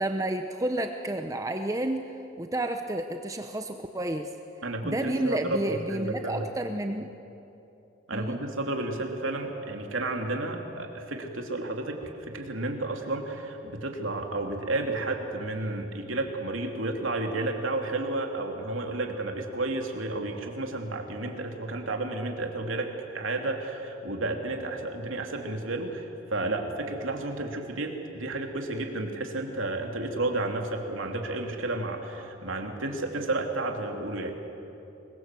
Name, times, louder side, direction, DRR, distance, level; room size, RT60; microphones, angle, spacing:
voice 1, 0.0-2.0 2.4-4.3 4.8-7.1 8.1-8.4, right 1 dB, 15° right, 6 dB, 0.8 m, -30 dB
voice 2, 4.6-6.5 8.1-34.3, right 2 dB, 80° right, 3 dB, 2.9 m, -32 dB
26.0 x 21.5 x 7.7 m, 2.9 s
head